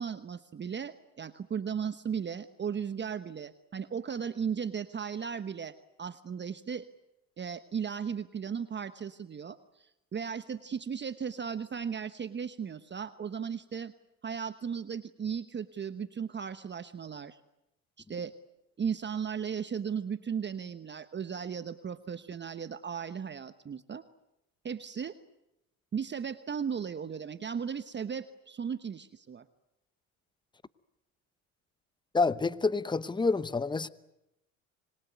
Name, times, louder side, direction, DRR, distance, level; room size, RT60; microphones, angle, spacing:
voice 1, 0.0-6.8 7.4-13.9 14.2-17.4 18.0-18.3 18.8-24.0 24.6-25.2 25.9-29.4, right 7 dB, 25° right, 12 dB, 1.1 m, -36 dB
voice 2, 32.1-33.9, left 3 dB, 10° left, 16 dB, 1.0 m, -28 dB
26.0 x 22.0 x 9.4 m, 0.87 s
supercardioid pair, 90°, 39 cm